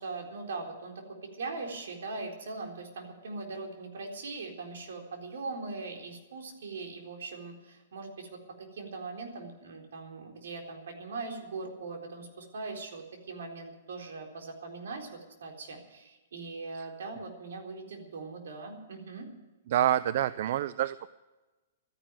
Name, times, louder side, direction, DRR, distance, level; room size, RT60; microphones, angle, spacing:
voice 1, 0.0-19.3, right 3 dB, 75° right, 2 dB, 4.0 m, -41 dB
voice 2, 19.7-21.1, right 11 dB, 55° right, 16 dB, 0.5 m, -27 dB
13.0 x 11.0 x 9.0 m, 1.1 s
hypercardioid pair, 145°, 0 cm